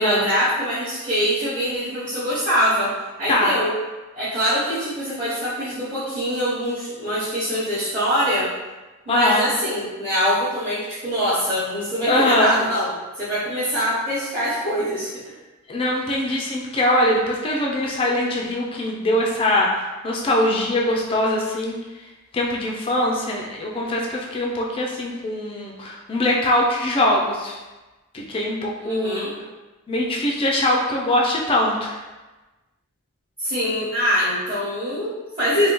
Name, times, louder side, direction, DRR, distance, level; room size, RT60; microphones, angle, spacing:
voice 1, 0.0-3.8 4.1-8.5 9.0-12.9 13.2-15.1 28.8-29.3 33.4-35.7, equal, 30° right, -12 dB, 0.9 m, -23 dB
voice 2, 9.1-9.4 12.1-12.6 15.7-21.8 22.3-27.6 28.1-29.3 29.9-32.0, left 1 dB, 25° left, -2 dB, 0.3 m, -22 dB
3.4 x 2.2 x 3.0 m, 1.2 s
head